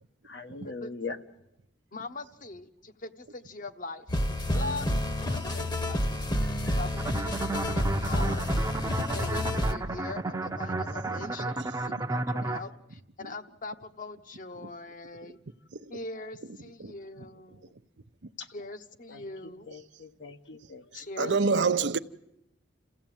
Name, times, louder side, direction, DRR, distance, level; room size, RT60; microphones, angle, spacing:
voice 1, 0.2-1.2 6.4-6.8 18.4-18.5 19.1-19.3 19.7-20.8 21.2-21.3, left 4 dB, 75° left, 1.4 m, -40 dB
voice 2, 1.9-4.0 4.5-4.9 5.3-6.0 6.8-7.4 7.7-8.5 9.1-15.4 15.9-17.7 18.5-19.7 20.9-21.9, left 2 dB, 50° left, 1.2 m, -41 dB
sound 1, 4.1-9.7, left 1 dB, 25° left, 1.1 m, -29 dB
sound 2, 7.0-12.6, right 2 dB, 20° right, 0.8 m, -32 dB
voice 3, 21.2-22.0, right 4 dB, 80° right, 0.8 m, -26 dB
27.5 x 15.5 x 9.1 m
head